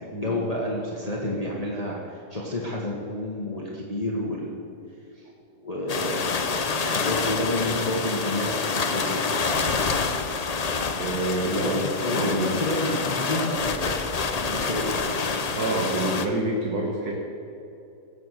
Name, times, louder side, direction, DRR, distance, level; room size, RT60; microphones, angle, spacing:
voice 1, 0.0-4.6 5.1-5.3 5.6-9.2 11.5-14.0 14.4-15.0, left 1 dB, 25° left, -4 dB, 1.6 m, -30 dB
sound 1, 5.9-16.3, left 4 dB, 45° left, 0.5 m, -27 dB
voice 2, 11.0-11.8 12.1-12.6 15.5-17.2, right 2 dB, 75° right, -1 dB, 1.9 m, -27 dB
17.5 x 7.2 x 6.5 m, 2.7 s
omnidirectional pair, 1.7 m